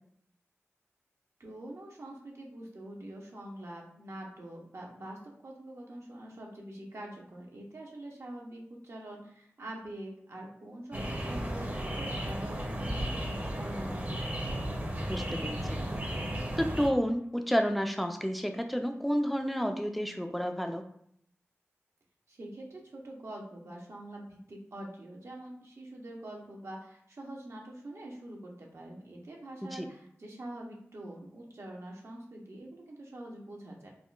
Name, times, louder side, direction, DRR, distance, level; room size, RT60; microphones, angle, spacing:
voice 1, 1.4-14.3 22.3-33.9, right 1 dB, 70° right, -1 dB, 0.7 m, -45 dB
sound 1, 10.9-16.9, equal, 35° right, 0.6 m, -34 dB
voice 2, 15.1-15.8 16.6-20.8 29.7-29.9, equal, ahead, 5 dB, 0.3 m, -30 dB
3.5 x 2.1 x 2.4 m, 0.68 s
cardioid pair, 45°, 5 cm